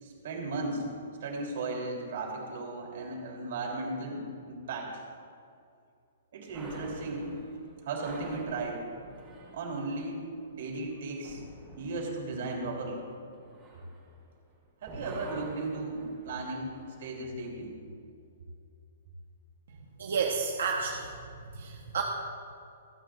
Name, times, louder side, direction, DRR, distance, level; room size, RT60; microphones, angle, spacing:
voice 1, 0.0-0.8 1.2-5.0 6.3-7.3 7.8-8.8 9.5-10.2 10.5-11.4 11.8-13.0 14.8-16.7 17.0-17.8, right 2 dB, 50° right, -1 dB, 3.4 m, -36 dB
sound 1, 6.5-14.5 14.8-17.2, right 1 dB, 15° right, 2.5 m, -48 dB
voice 2, 20.0-21.1 21.5-22.0, right 5 dB, 80° right, 0 dB, 1.1 m, -30 dB
27.0 x 9.4 x 2.6 m, 2.5 s
hypercardioid pair, 175°, 0 cm